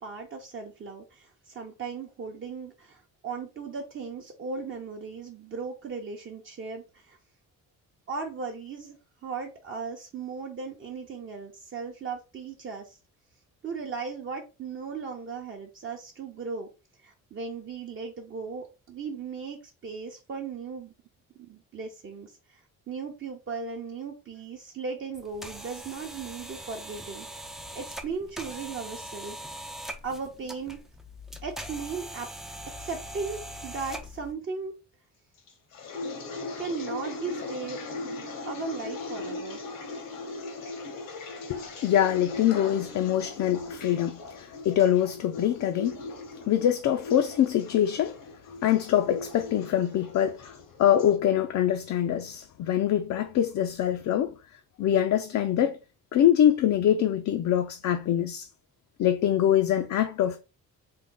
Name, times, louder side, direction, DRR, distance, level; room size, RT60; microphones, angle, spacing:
voice 1, 0.0-7.2 8.1-9.0 9.2-13.0 13.6-16.7 17.0-20.9 21.4-22.6 22.9-27.5 27.7-29.7 30.0-30.8 31.4-32.3 32.8-34.7 36.6-37.8 38.5-39.6, right 5 dB, 40° right, 0.7 m, -37 dB
sound 1, 25.1-34.3, equal, ahead, 0.3 m, -41 dB
sound 2, 35.5-51.2, left 3 dB, 80° left, 1.0 m, -39 dB
voice 2, 41.5-46.0 46.5-48.2 48.6-50.5 50.8-54.3 54.8-55.8 56.1-58.5 59.0-60.4, left 10 dB, 60° left, 0.5 m, -24 dB
3.7 x 2.2 x 3.6 m
cardioid pair, 120°, 32 cm